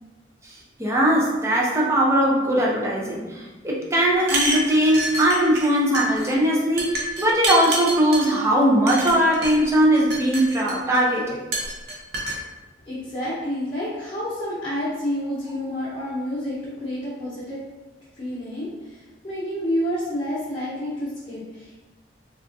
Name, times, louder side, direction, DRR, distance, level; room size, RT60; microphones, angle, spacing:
voice 1, 0.4-11.4, right 1 dB, 15° right, -3 dB, 0.5 m, -20 dB
sound 1, 4.2-5.7 5.9-6.3 6.8-8.3 8.9-9.5 10.0-11.0 11.5-12.4, right 2 dB, 60° right, 0.6 m, -27 dB
voice 2, 12.8-17.6 18.2-21.8, equal, 30° left, -11 dB, 0.9 m, -29 dB
3.5 x 2.4 x 2.6 m, 1.2 s
head